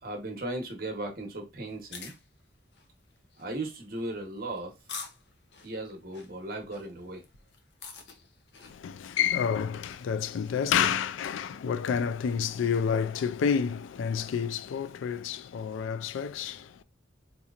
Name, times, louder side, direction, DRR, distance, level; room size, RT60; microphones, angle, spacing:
voice 1, 0.0-2.1 3.4-4.7 5.6-7.2, right 2 dB, 50° right, 0.9 m, -36 dB
sound 1, 1.7-10.8, left 5 dB, 65° left, 0.7 m, -49 dB
voice 2, 8.6-16.8, left 7 dB, 85° left, 0.3 m, -29 dB
4.0 x 2.9 x 2.4 m
head